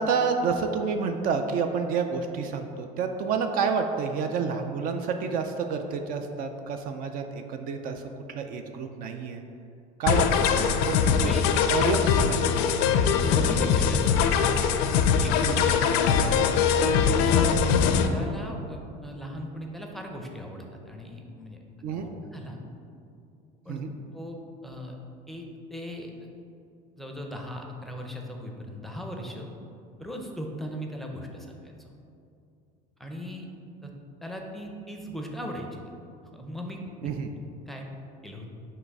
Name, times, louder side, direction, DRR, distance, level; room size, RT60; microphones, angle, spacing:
voice 1, 0.0-8.0 8.3-9.4 10.0-11.3 11.7-12.9 15.4-15.7 21.8-22.1 23.7-23.9 37.0-37.3, right 5 dB, 50° right, 6 dB, 0.4 m, -29 dB
sound 1, 10.1-18.1, left 7 dB, 70° left, 0.4 m, -22 dB
voice 2, 12.7-14.3 14.5-14.7 15.2-15.6 16.2-16.4 16.8-21.6 21.9-22.6 23.6-23.8 24.1-24.4 24.6-24.9 25.3-25.4 25.7-26.3 27.0-29.5 30.0-31.9 33.0-33.5 33.8-33.9 34.2-35.8 36.3-37.1 37.7-37.9 38.2-38.5, equal, ahead, 1 dB, 0.5 m, -38 dB
5.8 x 3.1 x 5.3 m, 2.6 s
cardioid pair, 135°, 18 cm